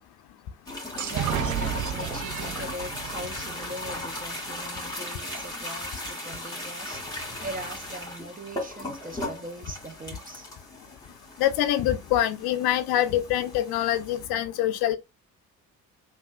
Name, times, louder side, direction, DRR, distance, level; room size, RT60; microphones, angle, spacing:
sound 1, 0.7-14.3, left 1 dB, 10° left, 1.7 m, -37 dB
voice 1, 1.0-10.5, right 1 dB, 20° right, 0.8 m, -41 dB
sound 2, 1.0-4.7, right 11 dB, 50° right, 0.4 m, -33 dB
voice 2, 11.4-15.0, left 12 dB, 60° left, 0.5 m, -25 dB
3.4 x 2.6 x 2.2 m
hypercardioid pair, 45°, 42 cm